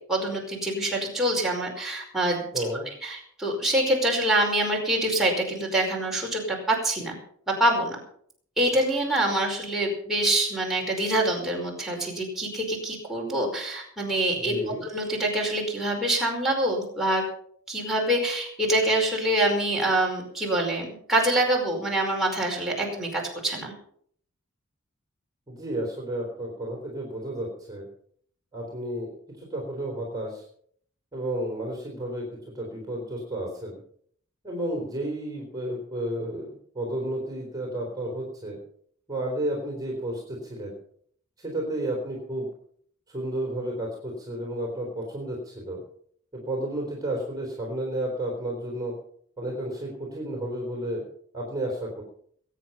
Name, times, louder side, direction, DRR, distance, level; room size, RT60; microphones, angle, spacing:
voice 1, 0.1-2.6 3.0-7.2 7.5-8.0 8.6-14.5 14.9-17.2 17.7-23.7, right 1 dB, ahead, -3 dB, 5.1 m, -25 dB
voice 2, 2.5-2.9 14.4-14.9 25.5-27.9 28.5-29.1 29.4-30.4 31.1-33.8 34.4-38.6 39.1-40.7 41.4-42.5 43.1-45.8 46.3-48.9 49.4-51.0 51.3-52.0, right 1 dB, 15° right, -1 dB, 4.2 m, -32 dB
22.0 x 9.2 x 5.7 m, 0.62 s
head